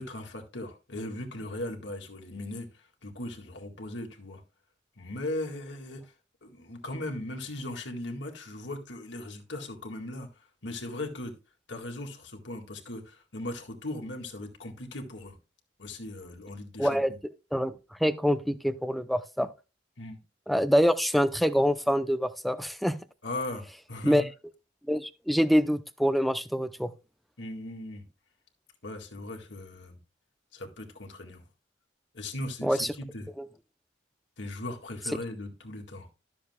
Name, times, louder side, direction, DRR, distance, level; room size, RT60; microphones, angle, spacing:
voice 1, 0.0-4.4 5.0-6.1 6.4-10.3 10.6-11.3 11.7-15.3 15.8-17.2 20.0-20.2 23.2-24.3 27.4-28.1 28.8-30.0 30.5-31.4 32.1-33.3 34.4-36.1, left 1 dB, 70° left, 1.9 m, -38 dB
voice 2, 16.8-17.1 17.5-17.7 18.0-19.5 20.5-23.0 24.0-24.2 24.9-26.9 32.6-32.9 33.4-33.5, equal, ahead, 0.5 m, -25 dB
13.0 x 7.0 x 2.2 m
head